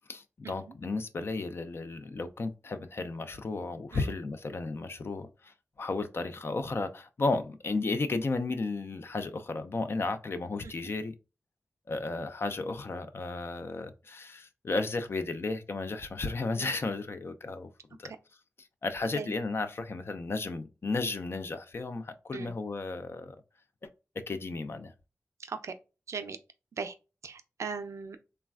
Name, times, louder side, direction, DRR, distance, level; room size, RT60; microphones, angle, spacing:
voice 1, 0.1-11.1 11.9-17.7 18.0-18.1 18.6-23.4 24.3-24.9, left 3 dB, 50° left, 0.4 m, -34 dB
voice 2, 25.4-25.7 26.1-26.4 26.7-26.9 27.2-28.2, right 5 dB, 75° right, 0.3 m, -39 dB
3.2 x 2.2 x 2.3 m
wide cardioid pair, 70°, 5 cm